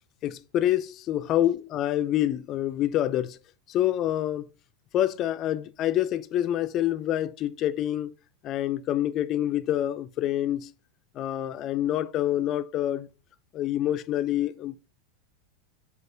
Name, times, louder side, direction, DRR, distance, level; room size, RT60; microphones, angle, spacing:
voice 1, 0.2-3.4 3.7-4.5 4.9-8.1 8.4-10.7 11.1-13.1 13.5-14.8, left 12 dB, 40° left, 0.3 m, -27 dB
4.8 x 3.2 x 2.6 m
supercardioid pair, 120°, 0 cm